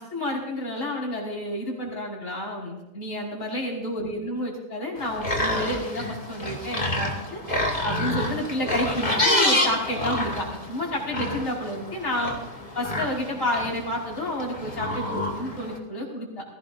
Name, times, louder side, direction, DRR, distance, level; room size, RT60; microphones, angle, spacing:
voice 1, 0.1-7.4 7.8-12.4 12.8-16.4, left 1 dB, 65° left, -3 dB, 5.6 m, -30 dB
sound 1, 5.0-15.8, left 1 dB, 35° left, 2.9 m, -28 dB
20.5 x 17.5 x 2.6 m, 0.95 s
omnidirectional pair, 1.5 m